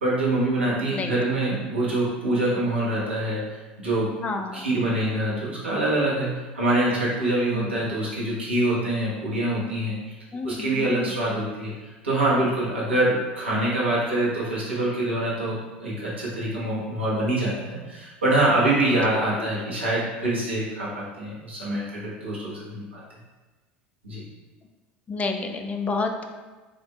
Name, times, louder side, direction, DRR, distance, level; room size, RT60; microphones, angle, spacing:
voice 1, 0.0-3.4 3.8-4.1 4.5-10.2 10.4-11.7 12.0-23.0 24.0-24.2, right 1 dB, 80° right, -7 dB, 1.2 m, -25 dB
voice 2, 0.9-1.2 4.2-4.7 7.5-7.7 10.3-11.1 19.4-19.5 25.1-26.2, left 4 dB, 25° left, 5 dB, 0.5 m, -29 dB
7.8 x 2.6 x 2.3 m, 1.2 s
figure-of-eight pair, 75°, 6 cm